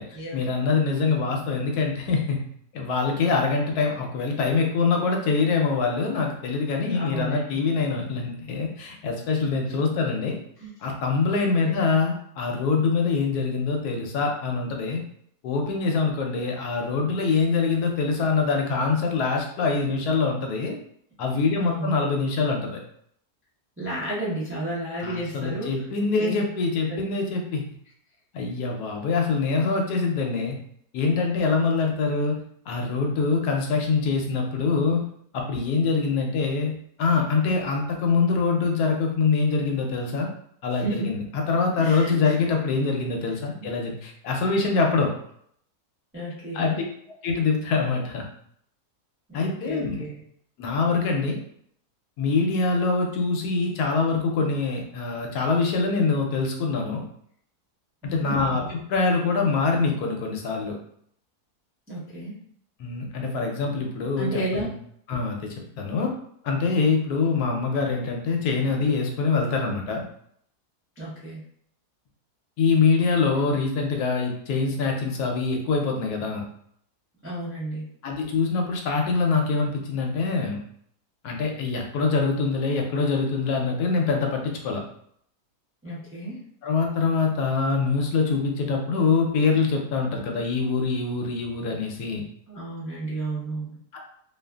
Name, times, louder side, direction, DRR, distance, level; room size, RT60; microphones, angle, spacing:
voice 1, 0.3-2.4 2.7-10.4 10.8-15.0 15.4-20.8 21.2-22.8 25.0-27.6 28.3-30.6 30.9-32.4 32.7-35.0 35.3-40.3 40.6-45.1 46.5-46.7 47.2-48.3 49.3-50.0 50.6-51.4 52.2-57.0 58.0-60.8 62.8-64.7 65.1-66.1 66.4-70.0 72.6-76.4 78.0-80.6 81.2-84.8 86.6-92.2 93.9-94.0, left 4 dB, 80° left, 1 dB, 1.1 m, -24 dB
voice 2, 6.9-7.6 9.7-9.8 10.6-10.7 11.6-11.9 21.6-22.0 23.8-25.7 26.2-26.3 26.9-27.0 40.8-41.1 41.8-42.3 43.6-43.7 46.1-46.8 49.3-50.2 58.0-58.4 61.9-62.4 64.2-64.7 71.0-71.4 77.2-77.9 85.8-86.4 92.5-93.8, right 1 dB, 20° right, -9 dB, 0.4 m, -32 dB
2.7 x 2.5 x 2.2 m, 0.68 s
omnidirectional pair, 1.7 m